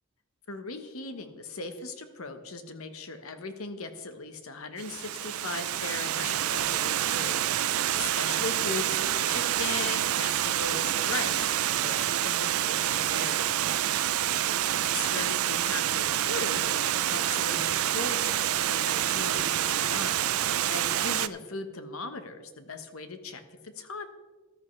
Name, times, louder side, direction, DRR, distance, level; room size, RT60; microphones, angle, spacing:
voice 1, 0.5-11.5 11.8-13.5 14.9-24.1, left 3 dB, 80° left, 8 dB, 1.2 m, -38 dB
Water, 4.8-21.3, right 12 dB, 85° right, 0.4 m, -27 dB
14.0 x 12.5 x 3.3 m, 1.3 s
head